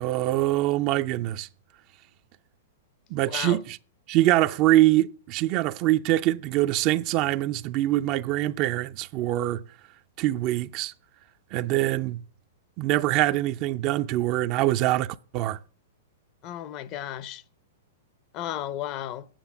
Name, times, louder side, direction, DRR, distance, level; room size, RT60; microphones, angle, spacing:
voice 1, 0.0-1.5 3.1-3.8 4.1-9.6 10.2-10.9 11.5-12.2 12.8-15.6, right 15 dB, 45° right, 0.5 m, -24 dB
voice 2, 3.3-3.6 16.4-17.4 18.3-19.3, left 12 dB, 40° left, 0.7 m, -34 dB
8.9 x 7.2 x 8.1 m
hypercardioid pair, 120°, 0 cm